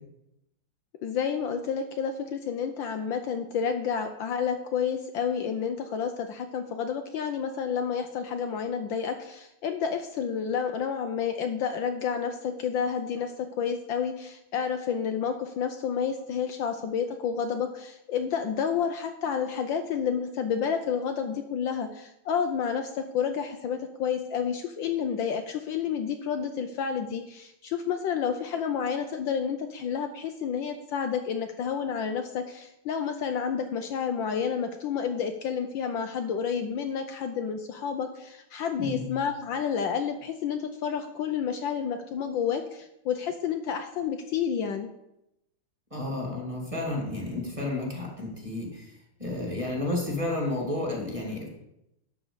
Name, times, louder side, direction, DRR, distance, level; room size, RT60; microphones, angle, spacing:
voice 1, 1.0-44.9, left 7 dB, 70° left, 6 dB, 1.3 m, -30 dB
voice 2, 45.9-48.9 49.2-51.5, left 2 dB, 15° right, -1 dB, 2.3 m, -31 dB
12.0 x 4.5 x 7.2 m, 0.84 s
omnidirectional pair, 2.3 m